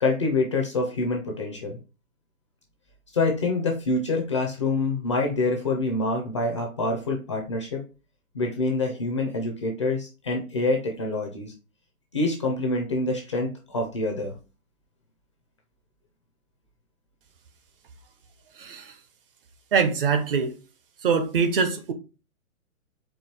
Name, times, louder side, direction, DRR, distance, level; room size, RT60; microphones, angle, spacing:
voice 1, 0.0-1.8 3.1-7.8 8.3-11.5 12.1-14.4, left 3 dB, 25° left, 0.4 m, -26 dB
voice 2, 18.6-18.9 19.7-20.6 21.0-21.9, right 5 dB, 40° right, 0.6 m, -23 dB
4.5 x 2.3 x 3.2 m
hypercardioid pair, 145°, 42 cm